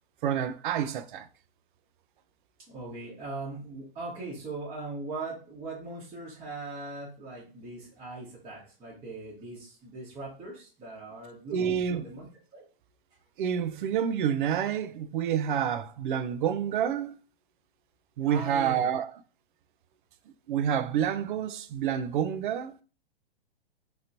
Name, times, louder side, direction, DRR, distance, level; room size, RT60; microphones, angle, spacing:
voice 1, 0.2-1.3 11.5-12.0 13.4-17.2 18.2-19.1 20.5-22.7, right 9 dB, 60° right, 0.5 m, -28 dB
voice 2, 2.7-12.6 18.3-18.9, right 3 dB, 20° right, 1.1 m, -40 dB
3.0 x 2.9 x 2.6 m
hypercardioid pair, 125°, 29 cm